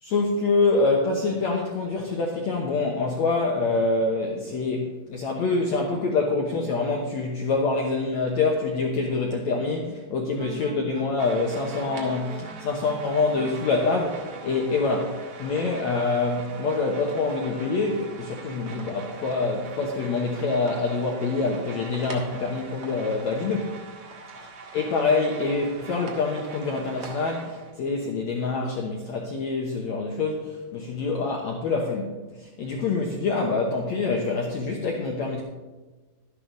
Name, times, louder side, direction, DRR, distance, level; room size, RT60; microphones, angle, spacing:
voice 1, 0.0-23.8 24.7-35.4, left 3 dB, 80° left, 0 dB, 1.5 m, -26 dB
sound 1, 10.4-17.7, right 2 dB, 70° right, 3.8 m, -44 dB
sound 2, 11.2-27.7, right 4 dB, 50° right, 1.9 m, -43 dB
12.5 x 11.0 x 3.8 m, 1.2 s
omnidirectional pair, 4.8 m